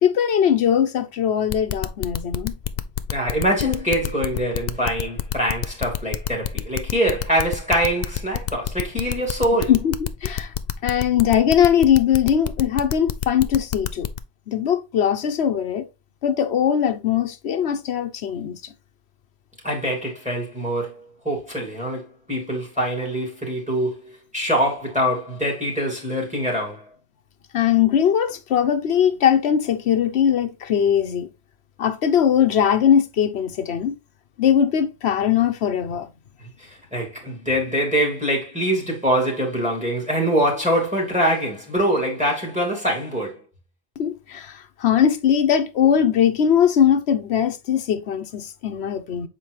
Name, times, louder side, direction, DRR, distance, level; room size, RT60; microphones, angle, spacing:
voice 1, 0.0-2.6 9.7-9.9 10.2-10.5 10.8-14.1 14.5-15.9 16.2-18.6 27.5-31.3 31.8-34.0 34.4-36.1 44.0-49.3, left 9 dB, 75° left, 1.1 m, -20 dB
sound 1, 1.5-14.2, left 10 dB, 55° left, 0.5 m, -27 dB
voice 2, 3.1-9.7 19.6-26.9 36.4-43.4, equal, 5° right, 2.6 m, -24 dB
7.5 x 4.6 x 3.0 m
omnidirectional pair, 1.1 m